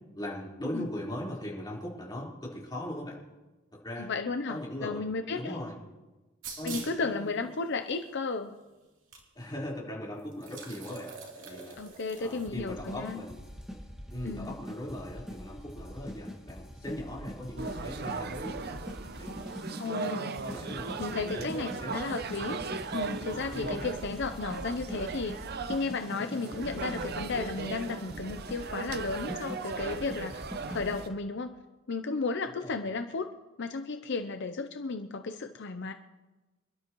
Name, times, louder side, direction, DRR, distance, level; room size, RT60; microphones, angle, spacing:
voice 1, 0.1-3.2 3.7-4.1 4.5-5.1 5.3-5.8 6.6-7.3 9.3-11.8 12.2-13.4 14.1-18.8 19.2-19.3 19.9-20.2 20.4-21.0 21.3-22.0 23.5-23.7 32.6-32.7, left 1 dB, 20° left, -5 dB, 4.2 m, -39 dB
voice 2, 4.0-5.6 6.6-8.6 11.8-13.2 14.2-14.5 19.8-20.5 21.0-22.6 22.9-25.4 25.7-30.4 30.7-31.6 31.9-33.3 33.6-35.9, left 4 dB, 60° left, 7 dB, 0.7 m, -34 dB
sound 1, 6.4-7.0 7.9-8.0 9.1-9.2 9.5-9.6 10.3-12.5, right 5 dB, 65° right, 3.2 m, -44 dB
sound 2, 12.5-31.1, equal, 5° right, 1.9 m, -43 dB
sound 3, 17.6-31.1, right 4 dB, 50° right, 0.6 m, -38 dB
27.0 x 12.0 x 3.1 m, 1.1 s
head